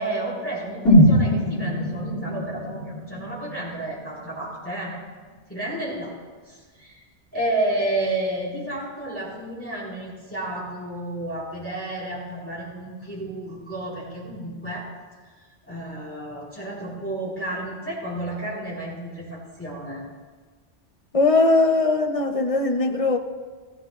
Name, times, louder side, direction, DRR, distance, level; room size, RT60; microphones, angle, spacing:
voice 1, 0.0-4.9 5.5-6.1 6.5-7.0 7.3-14.9 15.7-20.0, right 1 dB, 10° left, -8 dB, 4.1 m, -31 dB
sound 1, 0.9-4.8 5.1-5.2, equal, 90° left, 3.7 m, -21 dB
voice 2, 21.1-23.2, left 3 dB, 35° left, 4 dB, 0.8 m, -20 dB
16.0 x 15.0 x 2.4 m, 1.4 s
omnidirectional pair, 1.2 m